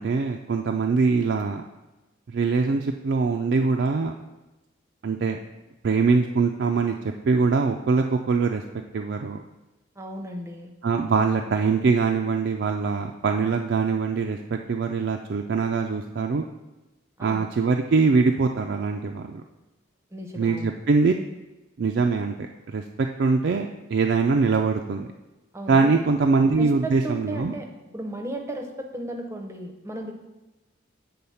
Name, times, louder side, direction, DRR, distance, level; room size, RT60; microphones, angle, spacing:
voice 1, 0.0-1.6 2.3-4.1 5.0-5.4 5.8-7.0 7.3-8.6 8.9-9.4 10.8-16.4 17.2-19.4 20.4-21.1 21.8-25.1 25.7-27.5, right 4 dB, 55° right, 3 dB, 0.3 m, -23 dB
voice 2, 10.0-10.7 17.2-17.5 20.1-20.7 25.5-26.1 26.6-27.7 27.9-30.1, right 1 dB, 15° right, 3 dB, 0.6 m, -35 dB
8.5 x 3.9 x 5.6 m, 1.1 s
head